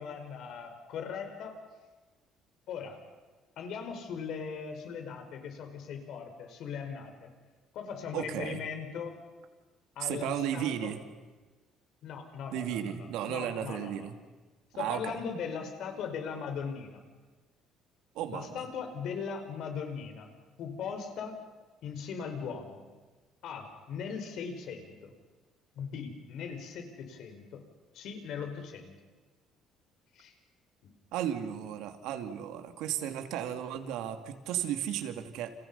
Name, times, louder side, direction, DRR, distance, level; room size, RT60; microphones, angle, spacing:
voice 1, 0.0-1.5 2.7-3.0 3.6-7.3 7.7-9.2 9.9-10.9 12.0-14.1 14.8-17.0 18.3-20.3 20.6-21.4 21.8-22.8 23.4-25.1 25.7-27.6 27.9-28.9 30.1-30.3 30.8-30.9, left 6 dB, 65° left, 5 dB, 5.2 m, -39 dB
voice 2, 8.1-8.6 10.0-11.0 12.5-14.1 14.7-15.2 18.1-18.6 31.1-35.5, right 10 dB, 90° right, 7 dB, 2.6 m, -34 dB
30.0 x 29.5 x 5.7 m, 1.3 s
cardioid pair, 140°, 0 cm